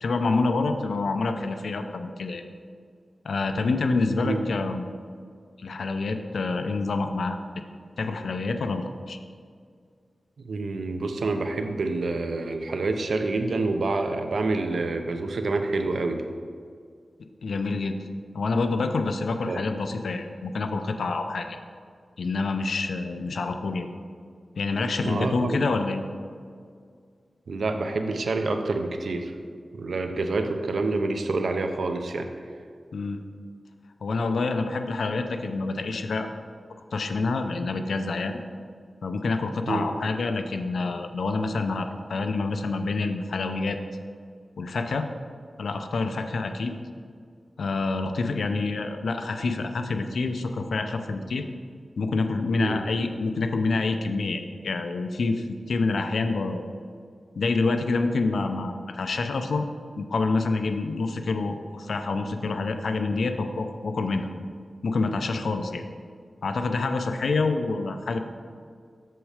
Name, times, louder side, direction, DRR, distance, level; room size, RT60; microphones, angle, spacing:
voice 1, 0.0-2.4 3.2-4.8 5.6-7.4 8.0-9.2 17.4-18.0 18.3-21.6 22.2-23.9 24.6-26.0 32.9-33.2 34.0-36.3 36.9-38.4 39.0-43.8 44.6-45.1 45.6-46.7 47.6-51.4 52.0-56.6 57.4-59.7 60.0-64.3 64.8-65.8 66.4-68.2, left 3 dB, 85° left, 6 dB, 0.5 m, -27 dB
voice 2, 10.4-16.2 19.4-19.6 25.0-25.6 27.5-29.3 29.7-32.3 39.7-39.9 52.6-52.8, right 3 dB, 80° right, 6 dB, 0.7 m, -27 dB
7.7 x 6.4 x 4.9 m, 2.1 s
wide cardioid pair, 100°, 0 cm